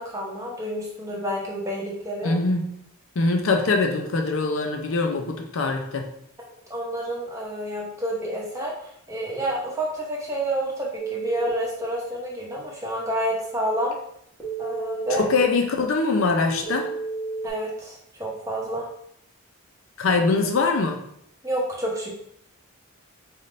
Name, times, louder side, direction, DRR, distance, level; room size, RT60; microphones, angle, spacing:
voice 1, 0.0-2.3 6.7-14.0 14.6-15.3 17.4-18.9 21.4-22.1, right 1 dB, 15° right, -3 dB, 0.8 m, -29 dB
voice 2, 2.2-2.7 3.2-6.1 15.2-16.9 20.0-21.0, left 3 dB, 60° left, 4 dB, 0.5 m, -23 dB
Telephone, 11.0-11.5 14.4-15.4 16.6-17.5, right 4 dB, 10° left, 1.0 m, -31 dB
4.1 x 3.5 x 2.5 m, 0.72 s
head